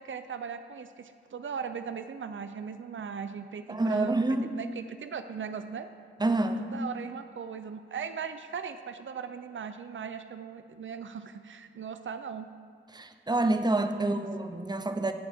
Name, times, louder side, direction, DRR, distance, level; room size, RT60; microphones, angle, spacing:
voice 1, 0.0-4.2 4.6-5.9 6.6-12.5 13.9-14.3, right 6 dB, 85° right, 9 dB, 0.5 m, -38 dB
voice 2, 3.7-4.5 6.2-6.7 12.9-15.1, right 2 dB, 20° right, 8 dB, 0.7 m, -27 dB
15.0 x 6.9 x 3.5 m, 2.2 s
wide cardioid pair, 55°, 20 cm